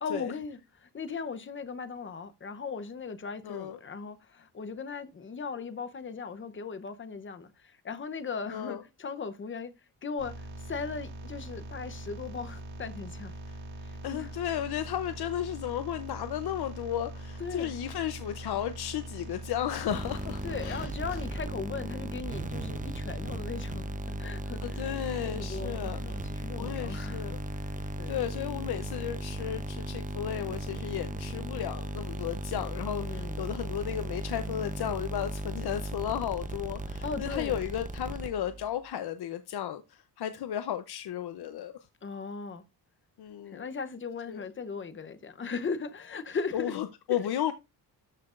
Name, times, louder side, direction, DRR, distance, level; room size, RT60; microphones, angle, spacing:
voice 1, 0.0-9.7 10.0-13.3 13.8-14.3 17.4-17.7 20.4-24.9 25.2-28.2 33.0-33.4 37.0-37.6 42.0-42.6 43.5-46.7 47.1-47.3, left 5 dB, 30° left, 0.8 m, -38 dB
voice 2, 3.4-3.8 8.5-8.8 13.5-13.6 14.0-21.2 24.6-26.2 26.6-27.4 27.8-41.8 43.2-43.7 44.3-44.4 46.5-47.5, left 10 dB, 65° left, 0.7 m, -34 dB
sound 1, 10.2-21.4, right 2 dB, 80° right, 2.4 m, -42 dB
sound 2, 19.9-38.7, right 1 dB, 20° right, 0.8 m, -36 dB
13.0 x 5.8 x 2.5 m
wide cardioid pair, 145°, 41 cm